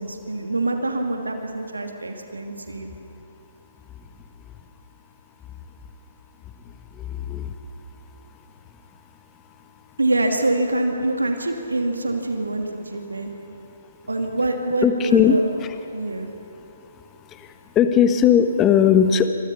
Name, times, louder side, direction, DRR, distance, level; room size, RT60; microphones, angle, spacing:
voice 1, 0.0-2.9 10.0-13.3 14.1-15.5 15.9-16.3, right 2 dB, 75° right, 3 dB, 2.7 m, -25 dB
voice 2, 14.8-15.7 17.7-19.3, left 8 dB, 20° left, 9 dB, 1.4 m, -17 dB
29.0 x 26.0 x 5.6 m, 3.0 s
figure-of-eight pair, 130°, 0 cm